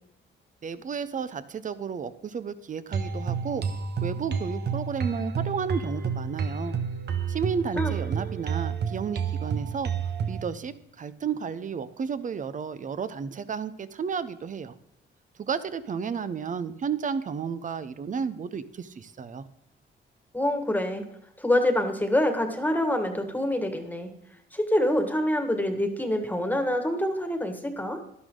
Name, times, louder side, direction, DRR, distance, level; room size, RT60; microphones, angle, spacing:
voice 1, 0.6-3.7 4.0-6.8 7.3-9.9 10.3-14.7 15.4-19.4, right 6 dB, 40° right, 14 dB, 0.9 m, -32 dB
sound 1, 2.9-10.4, right 6 dB, 55° right, 1.3 m, -30 dB
voice 2, 20.3-21.0 21.4-24.1 24.5-28.0, left 1 dB, 10° left, 6 dB, 1.8 m, -26 dB
12.0 x 11.5 x 3.9 m, 0.83 s
cardioid pair, 90°, 20 cm